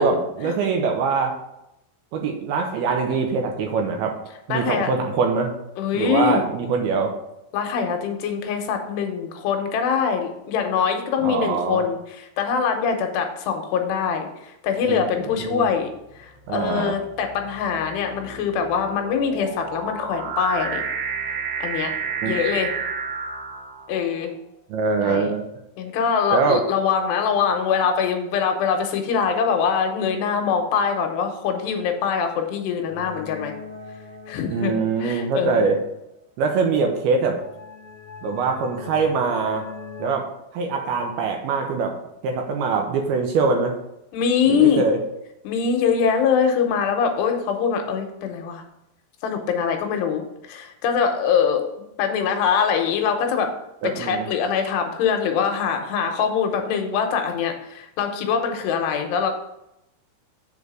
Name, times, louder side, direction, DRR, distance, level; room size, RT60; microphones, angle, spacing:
voice 1, 0.0-1.4 2.1-4.2 4.5-5.6 5.9-7.1 11.2-11.8 14.9-15.0 15.4-15.7 16.5-16.9 22.2-22.3 24.7-25.5 26.3-26.6 34.5-35.8 36.4-37.4 38.2-39.6 40.0-40.3 40.5-41.9 42.2-43.7 44.5-45.0 53.8-54.3, right 4 dB, 75° right, 3 dB, 2.5 m, -23 dB
voice 2, 4.5-4.9 5.8-6.4 7.5-15.9 16.2-20.8 21.6-21.9 22.3-22.7 23.9-24.3 25.0-25.3 25.8-33.5 34.3-35.7 44.1-44.8 45.4-48.6 49.2-51.6 52.0-53.5 53.8-59.3, left 6 dB, 85° left, 4 dB, 2.9 m, -23 dB
sound 1, 14.8-15.2 16.0-24.2, right 5 dB, 60° right, 2.1 m, -31 dB
sound 2, 32.9-36.0 37.0-40.1, left 4 dB, 5° left, 1.5 m, -41 dB
7.2 x 4.0 x 6.2 m, 0.85 s
omnidirectional pair, 4.9 m